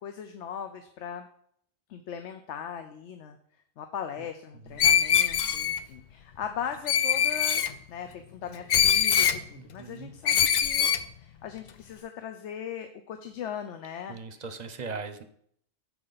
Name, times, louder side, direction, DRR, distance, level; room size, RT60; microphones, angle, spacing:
voice 1, 0.0-1.3 1.9-3.4 3.8-10.9 11.2-14.4, left 8 dB, 85° left, 7 dB, 1.0 m, -39 dB
Screech, 4.8-5.8 6.9-7.7 8.7-9.4 10.3-11.0, left 8 dB, 60° left, 0.5 m, -23 dB
voice 2, 9.5-10.1 14.1-15.2, right 4 dB, 45° right, 9 dB, 0.7 m, -39 dB
12.0 x 4.7 x 4.0 m, 0.66 s
omnidirectional pair, 1.2 m